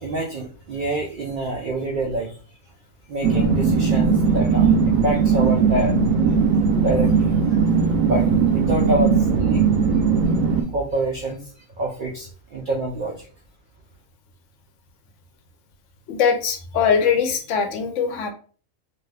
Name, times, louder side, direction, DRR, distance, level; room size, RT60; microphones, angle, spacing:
voice 1, 0.0-2.4 3.1-6.0 6.8-7.3 8.1-9.6 10.7-13.3, right 1 dB, 65° right, -1 dB, 0.5 m, -27 dB
sound 1, 3.2-10.6, right 5 dB, 90° right, 1.0 m, -19 dB
voice 2, 16.1-18.3, left 6 dB, 70° left, 5 dB, 0.9 m, -21 dB
2.5 x 2.4 x 3.2 m, 0.41 s
omnidirectional pair, 1.4 m